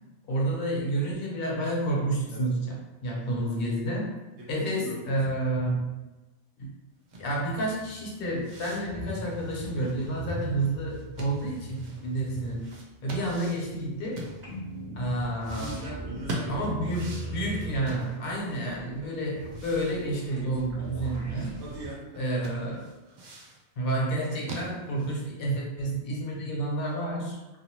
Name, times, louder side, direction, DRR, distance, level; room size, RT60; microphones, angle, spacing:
voice 1, 0.3-4.2 4.5-5.8 6.6-6.7 7.2-12.7 13.0-14.3 15.0-15.8 16.5-21.6 22.2-22.9 23.8-27.4, right 1 dB, 60° left, -1 dB, 0.9 m, -30 dB
voice 2, 4.4-5.2 15.5-16.7 21.6-22.2, equal, 85° right, -7 dB, 1.0 m, -39 dB
sound 1, 7.0-14.8 15.4-18.6 18.8-18.9 19.4-21.8 22.1-22.2 22.4-23.6 24.1-25.2, right 1 dB, 55° right, 0.5 m, -43 dB
sound 2, 7.1-14.6, equal, 30° left, 0.4 m, -43 dB
sound 3, 14.4-21.9, right 1 dB, 30° right, 1.0 m, -39 dB
2.5 x 2.4 x 2.9 m, 1.1 s
omnidirectional pair, 1.2 m